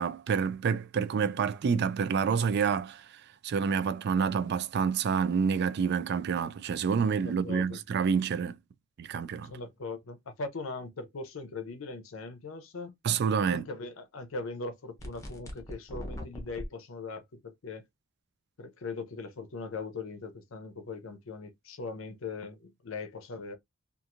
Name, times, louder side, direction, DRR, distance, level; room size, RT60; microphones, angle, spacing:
voice 1, 0.0-8.6 9.0-9.5 13.0-13.7, right 6 dB, 55° right, 0.3 m, -28 dB
voice 2, 7.2-7.8 9.4-12.9 13.5-17.9 18.6-23.6, left 3 dB, 75° left, 0.6 m, -40 dB
sound 1, 15.0-16.7, equal, 15° left, 0.7 m, -40 dB
2.9 x 2.4 x 2.4 m
head